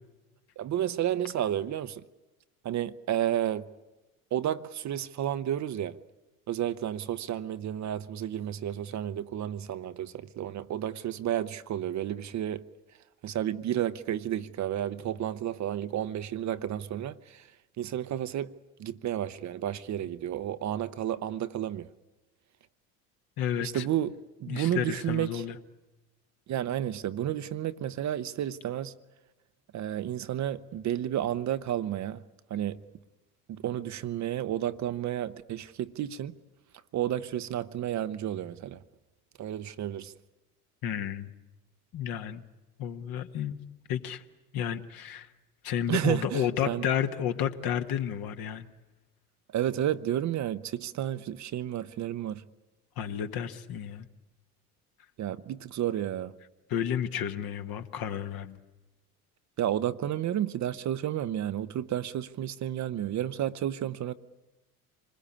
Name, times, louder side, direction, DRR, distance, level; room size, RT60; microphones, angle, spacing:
voice 1, 0.6-2.0 2.6-3.7 4.3-6.0 6.5-12.7 13.2-17.5 17.8-21.9 23.6-24.1 24.4-25.4 26.5-28.9 29.7-32.2 32.5-32.8 33.5-36.3 36.9-38.8 39.4-40.1 45.9-46.8 49.5-52.4 55.2-56.3 59.6-64.1, right 11 dB, 40° right, 0.8 m, -31 dB
voice 2, 23.4-23.9 24.5-25.6 40.8-41.3 41.9-42.4 42.8-43.6 43.9-44.2 44.5-45.3 45.6-48.7 53.0-54.1 56.7-58.6, left 9 dB, 50° left, 1.6 m, -31 dB
26.0 x 20.5 x 8.7 m
hypercardioid pair, 70°, 46 cm